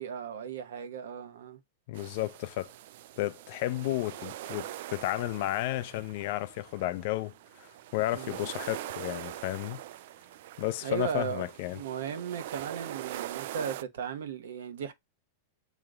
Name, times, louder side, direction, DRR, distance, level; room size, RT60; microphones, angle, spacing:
voice 1, 0.0-1.6 8.1-8.4 10.8-11.5 11.7-14.9, right 7 dB, 85° right, 1.0 m, -36 dB
voice 2, 1.9-2.7 3.2-7.3 7.6-9.8 10.6-11.8, left 15 dB, 55° left, 0.5 m, -32 dB
sound 1, 1.9-13.8, right 14 dB, 60° right, 0.3 m, -43 dB
6.5 x 3.0 x 2.4 m
supercardioid pair, 155°, 0 cm